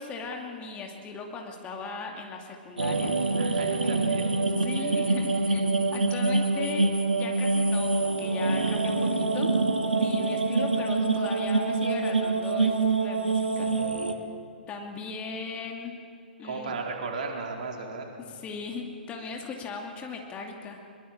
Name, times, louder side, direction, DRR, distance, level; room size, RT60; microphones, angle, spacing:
voice 1, 0.0-3.5 3.8-4.0 4.5-9.5 9.9-13.9 14.7-16.0 16.4-16.8 18.2-20.8, left 4 dB, 20° left, 2 dB, 2.5 m, -38 dB
sound 1, 2.8-14.1, right 3 dB, 75° right, 1.8 m, -25 dB
voice 2, 3.4-4.3 4.8-5.0 16.4-18.1, right 4 dB, 55° right, 1 dB, 4.1 m, -35 dB
23.0 x 21.5 x 7.4 m, 2.4 s
figure-of-eight pair, 110°, 5 cm